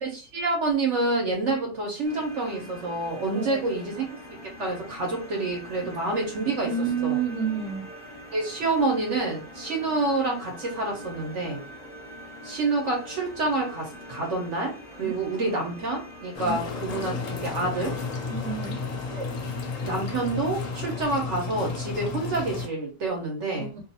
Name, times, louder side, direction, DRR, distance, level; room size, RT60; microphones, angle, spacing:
voice 1, 0.0-4.1 4.4-6.7 7.0-7.2 8.3-11.6 12.4-18.0 19.2-19.3 19.8-23.7, right 2 dB, 55° right, 1 dB, 0.9 m, -28 dB
sound 1, 2.0-21.0, equal, 30° left, 0.6 m, -44 dB
voice 2, 3.3-4.0 5.8-5.9 6.6-7.9 15.0-15.2 16.4-16.6 18.3-18.8 23.6-23.8, right 6 dB, 75° right, 2 dB, 1.1 m, -30 dB
sound 2, 16.3-22.7, left 4 dB, 65° left, 0.8 m, -33 dB
2.6 x 2.4 x 2.7 m, 0.35 s
omnidirectional pair, 1.8 m